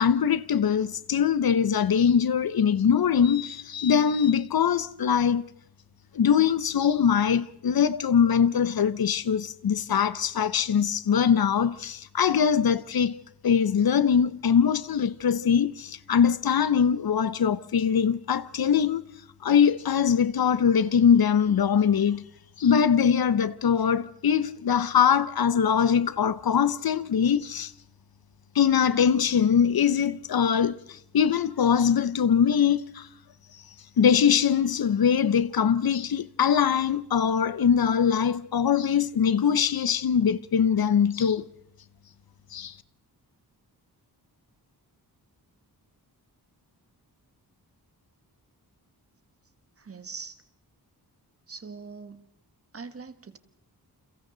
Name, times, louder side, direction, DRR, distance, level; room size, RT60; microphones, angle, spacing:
voice 1, 0.0-5.5 6.1-19.0 19.4-22.2 22.6-27.7 28.5-33.1 34.0-41.4 42.5-42.7, left 7 dB, 65° left, 0.9 m, -22 dB
voice 2, 49.8-50.4 51.5-52.3 52.7-53.4, right 4 dB, 35° right, 1.3 m, -42 dB
29.5 x 29.0 x 3.9 m
wide cardioid pair, 170°, 39 cm